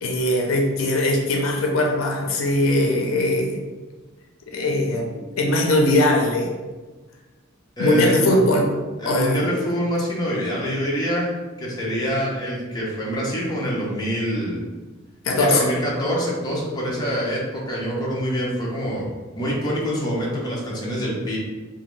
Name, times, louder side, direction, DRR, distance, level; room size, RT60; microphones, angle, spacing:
voice 1, 0.0-3.6 4.5-6.5 7.8-8.7 9.1-9.5 15.2-15.7, left 1 dB, 80° left, 1 dB, 0.5 m, -20 dB
voice 2, 7.8-8.4 9.0-14.6 15.4-19.1 19.4-21.4, equal, 20° left, -5 dB, 0.6 m, -25 dB
2.6 x 2.2 x 3.1 m, 1.3 s
head